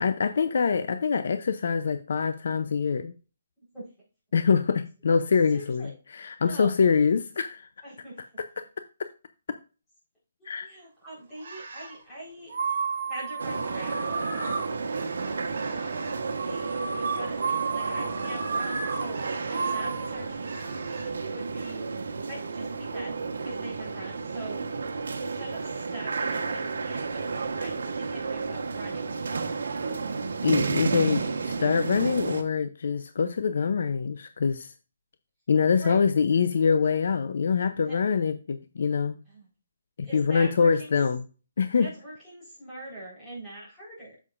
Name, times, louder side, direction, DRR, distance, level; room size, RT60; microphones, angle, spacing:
voice 1, 0.0-3.1 4.3-7.7 10.5-10.7 30.4-34.7 35.5-39.2 40.0-41.2 41.6-41.9, left 5 dB, 55° left, 11 dB, 0.5 m, -24 dB
voice 2, 5.5-5.9 6.4-7.0 7.8-8.2 10.4-12.6 13.1-15.8 16.4-21.8 22.3-23.2 23.4-24.6 25.1-29.2 35.8-36.1 37.8-38.0 39.3-39.5 40.0-41.0 41.8-44.2, right 1 dB, 10° left, -8 dB, 4.1 m, -43 dB
sound 1, 11.4-12.0 12.5-21.1, right 4 dB, 50° right, 3.4 m, -33 dB
sound 2, 13.4-32.4, right 4 dB, 75° right, 1.2 m, -32 dB
8.3 x 7.2 x 2.5 m, 0.34 s
hypercardioid pair, 175°, 0 cm